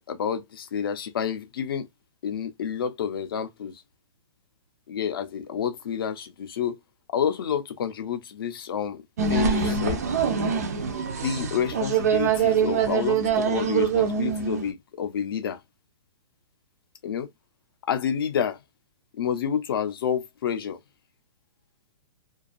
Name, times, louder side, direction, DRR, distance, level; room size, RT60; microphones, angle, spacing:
voice 1, 0.0-1.9 2.2-3.8 4.9-6.8 7.1-9.0 9.3-10.0 11.2-15.6 17.0-17.3 17.9-18.6 19.2-20.8, left 8 dB, 45° left, 0.5 m, -29 dB
sound 1, 9.2-14.7, right 6 dB, 30° right, 0.3 m, -24 dB
2.4 x 2.3 x 2.4 m
hypercardioid pair, 180°, 17 cm